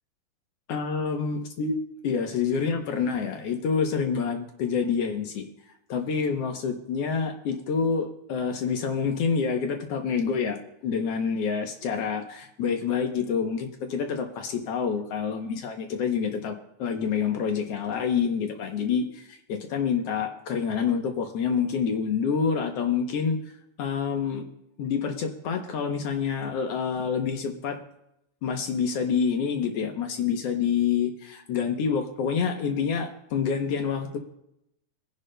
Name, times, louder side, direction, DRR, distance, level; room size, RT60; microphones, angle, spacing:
voice 1, 0.7-1.8 2.0-5.5 5.9-23.4 23.8-24.4 24.8-27.8 28.4-34.2, left 6 dB, 70° left, 5 dB, 1.5 m, -27 dB
24.0 x 10.5 x 2.2 m, 0.80 s
omnidirectional pair, 3.7 m